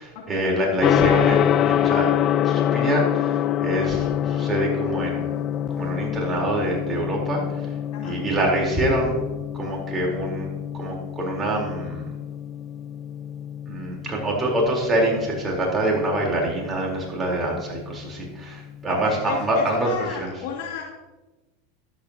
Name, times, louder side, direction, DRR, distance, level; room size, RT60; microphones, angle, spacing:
voice 1, 0.0-2.1 2.4-5.4 5.8-7.7 8.0-9.2 9.5-10.5 10.7-12.1 13.7-20.3, right 1 dB, 20° right, -2 dB, 4.0 m, -25 dB
Gong, 0.8-19.8, left 10 dB, 40° left, 0.4 m, -26 dB
voice 2, 19.0-20.8, left 6 dB, 65° left, -3 dB, 2.7 m, -33 dB
13.0 x 11.0 x 2.9 m, 1.2 s
hypercardioid pair, 105°, 0 cm